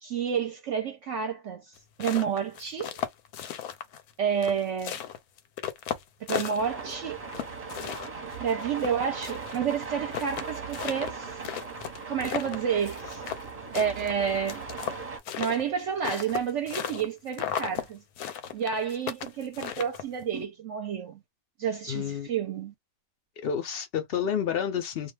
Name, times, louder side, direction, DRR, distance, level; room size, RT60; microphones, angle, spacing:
voice 1, 0.0-3.0 4.2-5.0 6.3-7.2 8.4-11.4 12.1-13.2 13.7-14.7 15.4-18.0 18.5-21.2 21.6-22.7, right 7 dB, 65° right, 0.8 m, -30 dB
sound 1, 1.8-4.1 4.4-6.9 7.3-9.6 9.8-9.9 10.1-13.5 13.7-17.1 17.3-17.9 18.2-20.2, left 9 dB, 90° left, 1.1 m, -35 dB
sound 2, 6.6-15.2, right 4 dB, 30° right, 0.9 m, -39 dB
voice 2, 21.9-22.3 23.4-25.1, left 8 dB, 70° left, 0.5 m, -29 dB
2.4 x 2.2 x 3.2 m
omnidirectional pair, 1.6 m